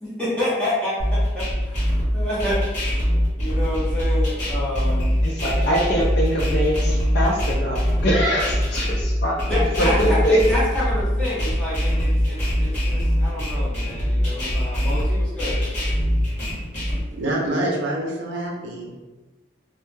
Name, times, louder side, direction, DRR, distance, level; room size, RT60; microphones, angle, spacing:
voice 1, 0.0-3.0 3.4-5.2 9.5-15.6, left 1 dB, 5° left, -10 dB, 0.7 m, -28 dB
sound 1, 1.0-17.0, equal, 40° left, 1.0 m, -22 dB
voice 2, 5.2-9.5 9.8-10.4, equal, 55° left, -4 dB, 0.4 m, -23 dB
voice 3, 17.1-18.9, right 1 dB, 75° right, -2 dB, 0.5 m, -26 dB
2.2 x 2.0 x 3.1 m, 1.1 s
head